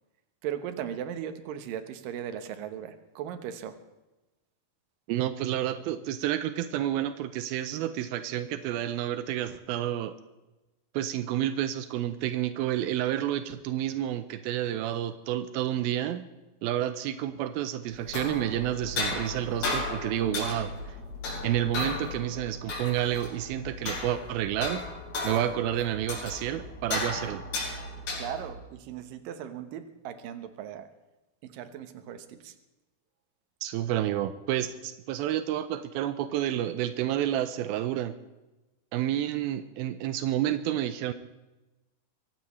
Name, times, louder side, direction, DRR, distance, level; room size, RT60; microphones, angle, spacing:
voice 1, 0.4-3.8 27.2-27.4 28.1-30.9 31.4-32.6, right 9 dB, 70° right, 9 dB, 2.3 m, -38 dB
voice 2, 5.1-10.2 10.9-16.3 16.6-20.7 21.4-24.9 25.2-27.4 33.6-38.1 38.9-41.1, right 12 dB, 85° right, 10 dB, 2.2 m, -30 dB
sound 1, 17.9-28.6, left 2 dB, 60° left, 6.4 m, -35 dB
23.5 x 16.0 x 3.2 m, 1.0 s
omnidirectional pair, 5.0 m